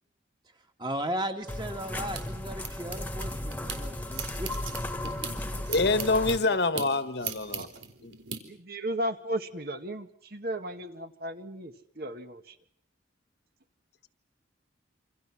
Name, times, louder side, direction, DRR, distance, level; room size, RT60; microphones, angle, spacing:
voice 1, 0.8-4.7, right 1 dB, 25° right, 2.3 m, -36 dB
sound 1, 1.4-3.8 4.1-8.4, right 7 dB, 90° right, 4.1 m, -40 dB
sound 2, 1.5-6.4, left 1 dB, 10° left, 1.7 m, -35 dB
voice 2, 5.7-7.7 8.0-8.1, left 3 dB, 60° left, 1.5 m, -26 dB
voice 3, 8.5-12.6, right 1 dB, 50° right, 1.9 m, -35 dB
28.0 x 27.0 x 6.2 m
head